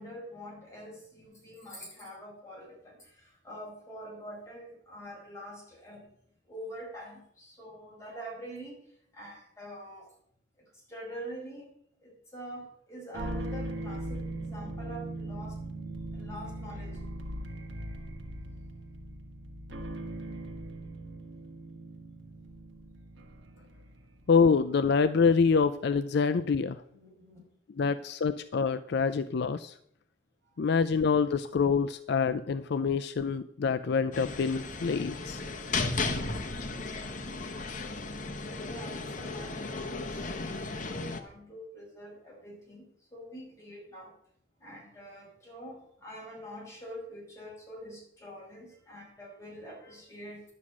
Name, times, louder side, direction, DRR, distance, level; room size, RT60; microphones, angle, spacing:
voice 1, 0.0-3.0 3.4-6.0 6.5-8.7 9.1-10.1 10.9-11.7 12.0-15.5 16.1-17.0 26.9-27.4 27.8-28.0 38.6-42.8 43.1-44.1 44.6-50.4, equal, 15° left, -3 dB, 5.4 m, -45 dB
sound 1, 13.1-24.5, right 1 dB, 80° right, 1.4 m, -40 dB
voice 2, 24.3-26.8 27.8-29.7 30.6-35.4, left 5 dB, 60° left, 11 dB, 0.4 m, -26 dB
sound 2, 34.1-41.2, left 3 dB, 45° left, 1.1 m, -35 dB
11.0 x 6.3 x 8.5 m, 0.70 s
head